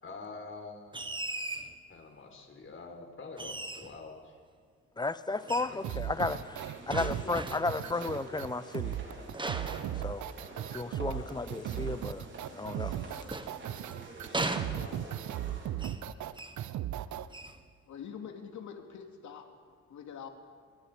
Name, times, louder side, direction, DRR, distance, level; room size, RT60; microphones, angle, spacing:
voice 1, 0.0-1.4 1.9-4.4 5.7-6.4 6.9-7.4 9.0-9.3 11.0-11.4 14.4-15.2, left 4 dB, 45° left, 3 dB, 4.4 m, -47 dB
sound 1, 0.9-1.7 3.4-4.0 5.5-5.8 6.9-7.8 9.3-10.6 12.8-13.9 14.3-15.2 15.8-16.1 16.3-16.6 17.3-17.6, right 2 dB, 15° right, 1.5 m, -38 dB
voice 2, 5.0-6.4 6.9-9.0 10.0-10.3 10.7-12.3 12.5-13.0, left 3 dB, 15° left, 14 dB, 0.9 m, -33 dB
sound 2, 5.3-15.7, right 2 dB, 40° right, 4.9 m, -49 dB
sound 3, 5.8-17.3, right 12 dB, 70° right, 0.9 m, -37 dB
voice 3, 17.9-19.5 19.9-20.3, left 7 dB, 70° left, 4 dB, 2.9 m, -44 dB
24.5 x 22.5 x 5.2 m, 2.1 s
cardioid pair, 90°, 30 cm